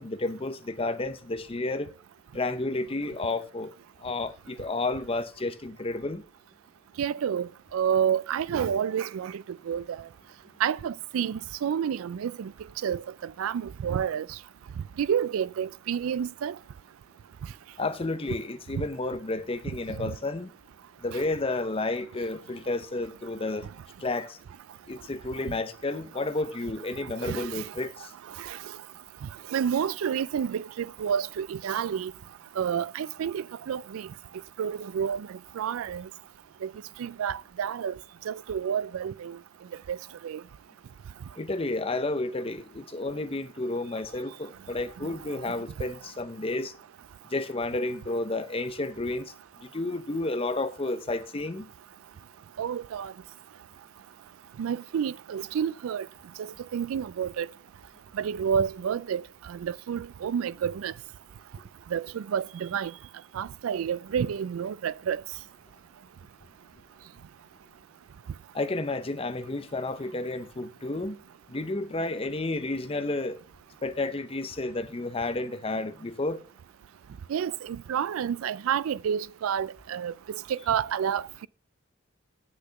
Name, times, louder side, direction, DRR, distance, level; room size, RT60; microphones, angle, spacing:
voice 1, 0.0-1.9 2.3-3.7 4.0-6.2 17.8-20.5 21.0-23.7 24.0-24.4 24.9-28.1 41.4-46.7 47.3-49.3 49.6-51.7 68.5-71.2 71.5-73.4 73.8-76.4, left 2 dB, 25° left, 0.7 m, -31 dB
voice 2, 7.0-10.1 10.6-12.5 12.8-14.4 15.0-16.6 18.7-18.8 20.0-20.1 25.5-25.6 27.2-27.7 28.4-28.6 29.2-32.1 32.6-34.1 34.6-36.1 36.6-36.7 37.0-38.0 38.3-39.4 39.9-40.0 40.2-40.4 45.0-45.1 52.6-53.1 54.6-56.1 56.4-57.5 58.1-60.9 61.9-62.9 63.3-65.2 77.3-81.5, right 8 dB, 80° right, 0.3 m, -30 dB
7.9 x 6.5 x 6.8 m
head